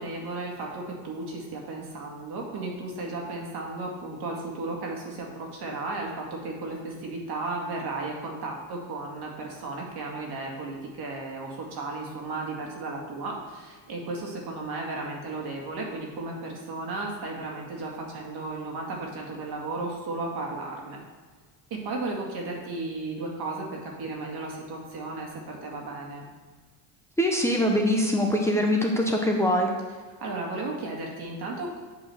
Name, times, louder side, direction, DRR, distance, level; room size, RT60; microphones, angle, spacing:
voice 1, 0.0-21.0 21.8-26.3 30.2-31.8, right 2 dB, 60° right, -1 dB, 2.1 m, -34 dB
voice 2, 27.2-29.7, equal, 5° left, 0 dB, 0.9 m, -23 dB
7.7 x 4.0 x 6.3 m, 1.5 s
cardioid pair, 95°, 43 cm